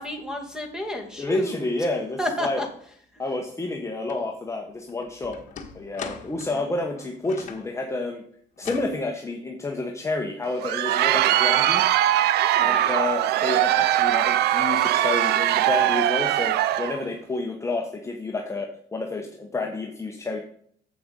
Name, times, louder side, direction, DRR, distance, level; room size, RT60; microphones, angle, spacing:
voice 1, 0.0-1.6 2.2-2.7 6.5-6.7 12.4-12.8, left 1 dB, 5° right, 3 dB, 2.3 m, -31 dB
voice 2, 1.2-2.6 3.2-5.4 5.7-8.2 8.6-11.8 12.6-20.4, left 2 dB, 15° left, 1 dB, 1.1 m, -29 dB
sound 1, 4.1-4.2 4.7-7.7 8.6-9.0, left 6 dB, 50° left, 1.3 m, -40 dB
Crowd, 10.4-17.0, right 13 dB, 75° right, 0.5 m, -21 dB
7.7 x 6.7 x 5.3 m, 0.62 s
cardioid pair, 110°, 17 cm